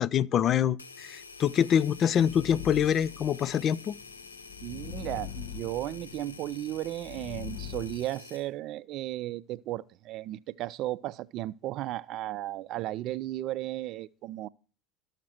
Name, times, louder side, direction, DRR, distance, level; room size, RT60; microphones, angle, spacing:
voice 1, 0.0-4.0, left 9 dB, 40° left, 0.4 m, -25 dB
sound 1, 0.8-8.5, left 4 dB, 85° left, 0.8 m, -48 dB
sound 2, 2.2-8.0, left 9 dB, 55° left, 1.6 m, -43 dB
voice 2, 4.6-14.5, right 15 dB, 50° right, 0.4 m, -35 dB
13.5 x 6.6 x 4.4 m
figure-of-eight pair, 70°, 0 cm